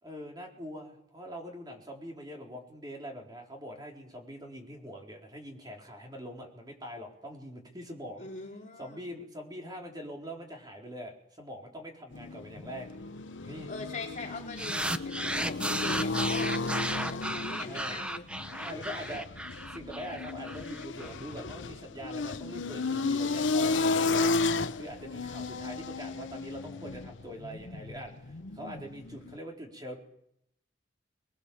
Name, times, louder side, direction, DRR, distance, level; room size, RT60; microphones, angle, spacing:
voice 1, 0.0-8.3 8.8-12.9 13.5-13.7 17.6-18.0 18.6-24.4 24.7-30.0, equal, 20° right, 1 dB, 4.3 m, -43 dB
voice 2, 8.2-9.1 13.4-18.3, left 3 dB, 40° left, 0 dB, 3.6 m, -42 dB
sound 1, 12.1-29.4, left 3 dB, 80° left, 0.9 m, -33 dB
sound 2, 13.0-28.9, right 2 dB, 80° right, 5.1 m, -64 dB
sound 3, 14.6-21.1, right 1 dB, 5° right, 0.9 m, -34 dB
25.5 x 20.5 x 7.2 m, 0.74 s
head